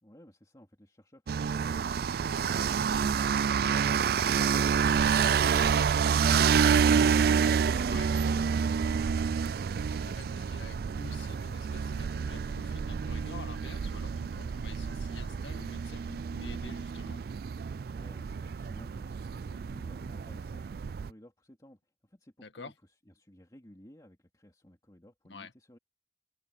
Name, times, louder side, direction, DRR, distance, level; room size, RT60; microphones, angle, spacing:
voice 1, 0.0-9.3 17.8-22.7 23.1-25.8, equal, 20° left, 2.7 m, -55 dB
sound 1, 1.3-21.1, right 6 dB, 55° right, 0.3 m, -28 dB
voice 2, 9.8-17.2 22.4-22.7 25.3-25.5, left 3 dB, 85° left, 1.7 m, -48 dB
head